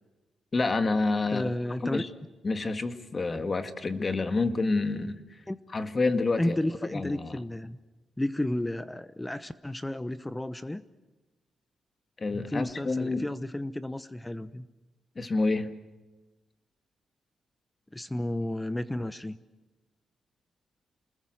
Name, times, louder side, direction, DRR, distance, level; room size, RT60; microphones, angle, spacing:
voice 1, 0.5-1.5 1.9-2.1 2.4-5.2 5.7-6.6 6.9-7.4 12.2-13.3 15.2-15.8, left 3 dB, 35° left, 9 dB, 1.9 m, -28 dB
voice 2, 1.3-2.0 5.5-5.6 6.4-7.8 8.2-10.8 12.5-14.7 17.9-19.4, left 1 dB, 10° left, 14 dB, 0.9 m, -32 dB
28.5 x 20.5 x 8.0 m, 1.1 s
cardioid pair, 105°, 0 cm